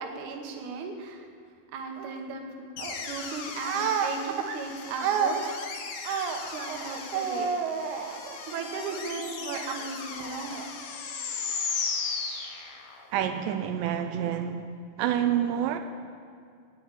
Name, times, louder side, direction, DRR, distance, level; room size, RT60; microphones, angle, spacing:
voice 1, 0.0-1.3 1.7-5.6 6.0-10.7, right 5 dB, 65° right, 4 dB, 2.1 m, -32 dB
sound 1, 2.8-13.1, left 5 dB, 75° left, 3.0 m, -36 dB
voice 2, 13.1-14.6 15.0-15.8, right 10 dB, 90° right, 7 dB, 2.0 m, -27 dB
9.2 x 9.0 x 8.7 m, 2.2 s
omnidirectional pair, 4.6 m